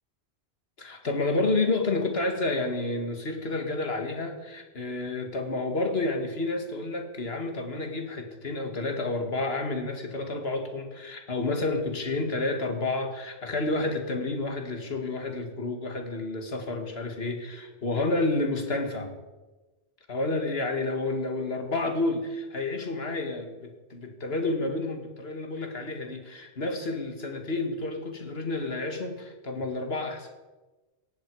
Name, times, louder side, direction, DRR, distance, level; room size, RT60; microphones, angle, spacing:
voice 1, 0.8-19.1 20.1-30.4, left 2 dB, 60° left, 4 dB, 2.3 m, -30 dB
18.0 x 15.5 x 4.9 m, 1.2 s
omnidirectional pair, 1.2 m